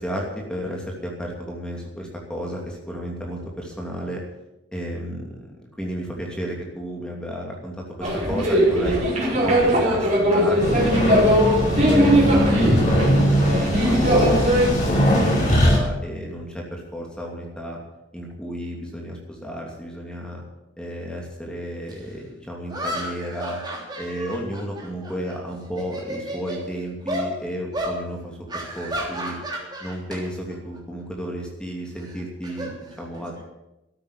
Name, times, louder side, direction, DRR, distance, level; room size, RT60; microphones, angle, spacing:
voice 1, 0.0-4.2 4.7-5.5 5.8-9.0 9.4-11.3 11.6-12.1 12.6-17.8 18.1-20.4 20.8-23.6 24.0-29.4 29.8-33.3, equal, 5° left, -1 dB, 2.8 m, -32 dB
sound 1, 8.0-14.7, equal, 40° right, 4.8 m, -20 dB
sound 2, 10.6-15.8, equal, 40° left, 6.3 m, -20 dB
sound 3, 21.9-22.0 22.7-25.4 25.7-26.6 27.1-27.3 27.7-28.0 28.5-30.2 30.5-30.8 32.0-33.4, equal, 25° right, 3.3 m, -32 dB
13.0 x 9.3 x 9.1 m, 0.94 s
head